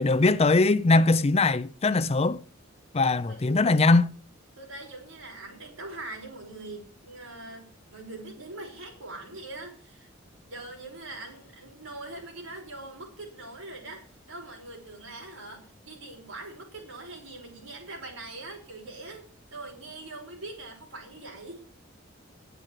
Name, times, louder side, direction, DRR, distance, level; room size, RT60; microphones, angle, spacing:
voice 1, 0.0-2.4 2.9-4.1, left 3 dB, 30° left, 0.5 m, -21 dB
voice 2, 4.6-10.1 10.5-14.0 14.3-19.3 19.5-21.7, right 2 dB, 70° right, 5.6 m, -42 dB
10.5 x 8.2 x 7.3 m
head